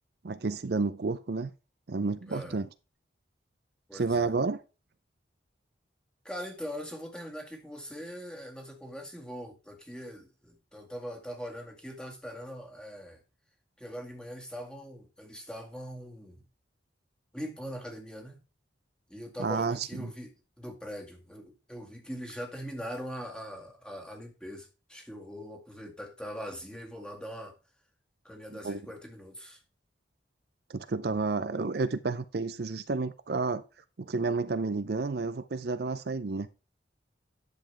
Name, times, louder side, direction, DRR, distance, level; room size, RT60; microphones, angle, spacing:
voice 1, 0.2-1.5 1.9-2.7 3.9-4.6 19.4-20.1 28.6-28.8 30.7-33.6 34.0-36.5, right 3 dB, 55° right, 0.5 m, -30 dB
voice 2, 2.3-2.6 3.9-4.3 6.2-13.2 13.8-16.4 17.3-18.4 19.1-20.3 20.6-27.5 28.2-29.6, equal, 5° left, 2.0 m, -41 dB
10.5 x 7.1 x 3.4 m
head